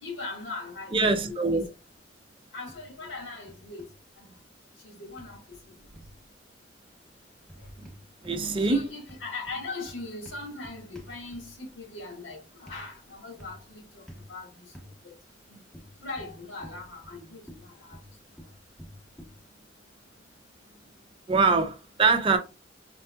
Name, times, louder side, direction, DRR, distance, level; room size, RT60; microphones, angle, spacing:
voice 1, 0.0-1.7 2.5-3.9 4.2-4.3 4.8-5.7 8.5-14.0 14.3-14.6 15.0-15.1 15.5-15.6 16.0-18.0, left 3 dB, 85° left, 1.5 m, -40 dB
voice 2, 0.9-1.7 8.2-8.8 21.3-22.4, right 4 dB, 30° right, 0.5 m, -23 dB
sound 1, 2.7-3.2 3.5-3.9 5.2-6.2 7.4-8.4 8.7-11.7 12.7-12.8 13.4-13.7 14.1-14.3 14.7-14.9 15.7-17.2 17.5-19.4, equal, 5° left, 0.8 m, -49 dB
4.5 x 2.7 x 2.2 m
head